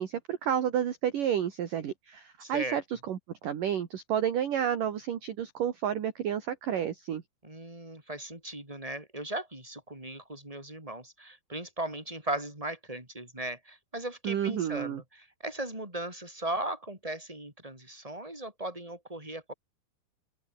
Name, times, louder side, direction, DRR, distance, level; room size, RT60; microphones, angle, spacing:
voice 1, 0.0-7.2 14.2-15.0, right 9 dB, 55° right, 3.3 m, -30 dB
voice 2, 2.4-2.8 7.4-19.5, right 1 dB, 5° right, 7.2 m, -37 dB
open air
omnidirectional pair, 5.2 m